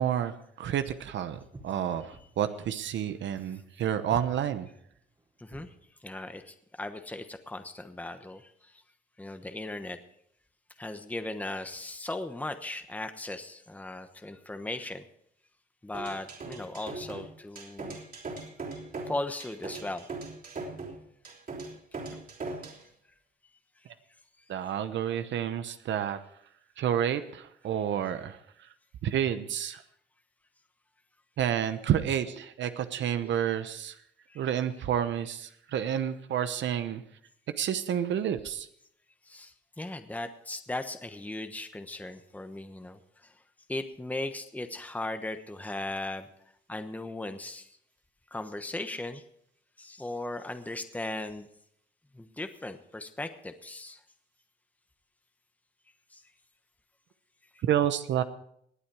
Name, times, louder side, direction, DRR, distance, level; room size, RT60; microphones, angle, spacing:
voice 1, 0.0-4.7 24.5-26.2 26.8-28.4 29.0-29.8 31.4-33.9 34.4-37.0 37.6-38.7 57.6-58.2, right 9 dB, 70° right, 10 dB, 0.9 m, -29 dB
Walk footsteps, 1.3-5.8, right 2 dB, 20° right, 2.3 m, -48 dB
voice 2, 5.4-5.7 6.0-8.8 9.2-10.0 10.8-15.1 15.8-18.0 19.1-20.1 34.3-34.4 39.2-43.3 43.7-46.3 46.7-47.8 48.3-49.2 49.8-51.5 52.1-54.0 56.1-56.2 57.5-57.6, left 2 dB, 10° left, 8 dB, 1.1 m, -38 dB
sound 1, 15.9-22.8, right 3 dB, 45° right, 3.5 m, -40 dB
19.5 x 8.7 x 4.8 m, 0.69 s
cardioid pair, 90°, 20 cm